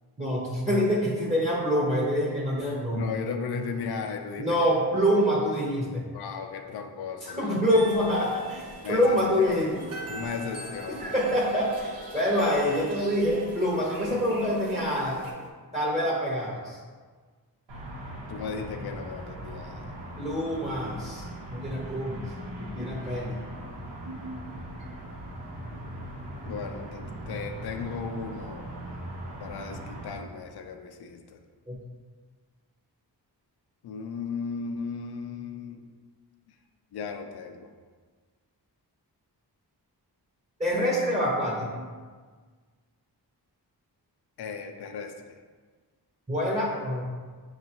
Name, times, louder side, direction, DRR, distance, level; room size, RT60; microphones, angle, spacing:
voice 1, 0.2-3.0 4.4-6.1 7.2-9.9 10.9-15.2 15.7-16.8 20.2-21.3 21.5-22.3 22.6-23.4 24.0-24.4 31.7-31.8 40.6-41.9 46.3-47.0, equal, 15° right, -4 dB, 0.7 m, -26 dB
voice 2, 3.0-4.7 6.1-7.7 8.8-9.5 10.1-11.2 14.1-14.2 18.3-20.0 26.4-28.7 29.4-31.4 33.8-35.9 36.9-37.7 44.4-45.1, left 5 dB, 70° left, 5 dB, 0.5 m, -36 dB
sound 1, 7.7-15.3, right 1 dB, 55° right, 0.7 m, -42 dB
sound 2, 9.2-15.5, left 2 dB, 20° left, 0.6 m, -46 dB
sound 3, 17.7-30.2, right 1 dB, 90° right, 0.9 m, -40 dB
5.9 x 2.4 x 2.9 m, 1.5 s
cardioid pair, 70°, 40 cm